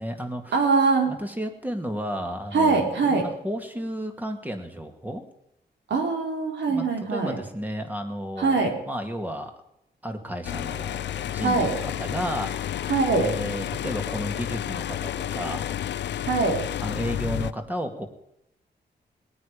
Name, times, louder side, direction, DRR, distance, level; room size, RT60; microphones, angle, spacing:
voice 1, 0.0-0.7 1.1-5.3 6.7-9.5 10.0-15.8 16.8-18.1, equal, 10° right, 6 dB, 2.0 m, -33 dB
voice 2, 0.5-1.1 2.5-3.3 5.9-7.4 8.4-8.8 11.4-11.7 12.9-13.3 16.3-16.7, right 4 dB, 80° right, 3 dB, 3.8 m, -22 dB
sound 1, 10.4-17.5, left 11 dB, 80° left, 0.6 m, -31 dB
20.0 x 9.4 x 5.0 m, 0.81 s
wide cardioid pair, 130°, 18 cm